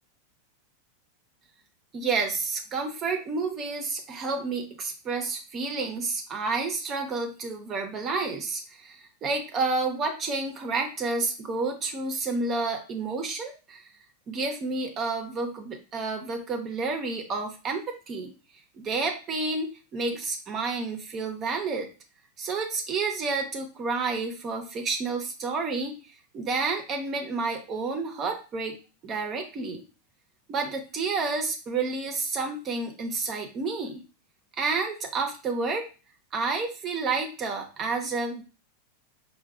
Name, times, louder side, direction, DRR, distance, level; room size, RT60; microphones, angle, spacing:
voice 1, 1.9-13.9 14.3-18.3 18.8-21.9 22.4-26.0 26.3-28.8 29.0-29.8 30.5-34.0 34.6-35.9 36.3-38.4, right 4 dB, 35° right, 3 dB, 0.7 m, -30 dB
4.7 x 2.2 x 2.3 m, 0.33 s
hypercardioid pair, 100°, 0 cm